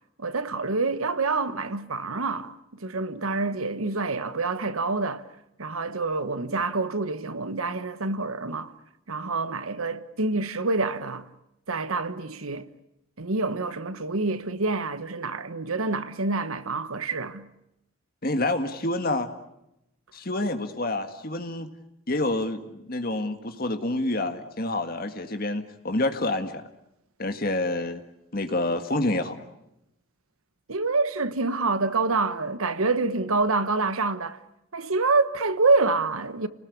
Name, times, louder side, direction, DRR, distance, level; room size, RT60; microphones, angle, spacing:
voice 1, 0.2-5.2 5.6-8.7 9.1-11.3 11.7-12.7 13.2-17.5 30.7-34.4 34.7-36.5, right 3 dB, 85° right, 1.2 m, -27 dB
voice 2, 18.2-19.3 20.1-21.7 22.1-26.6 27.2-28.0 28.3-29.4, left 2 dB, 45° left, 1.8 m, -28 dB
29.5 x 19.5 x 8.4 m
head